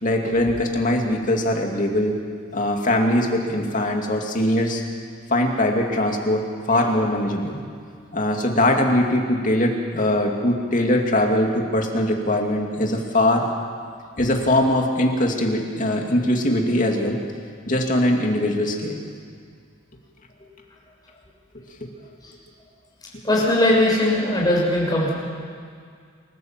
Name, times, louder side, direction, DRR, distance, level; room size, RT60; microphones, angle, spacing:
voice 1, 0.0-2.2 2.5-4.8 5.3-7.6 8.1-13.5 14.2-17.2 17.7-19.0 21.8-21.9 23.1-23.2, left 1 dB, 40° left, 2 dB, 2.6 m, -21 dB
voice 2, 23.2-25.1, left 1 dB, 20° left, -4 dB, 6.8 m, -19 dB
27.5 x 15.5 x 7.5 m, 2.1 s
head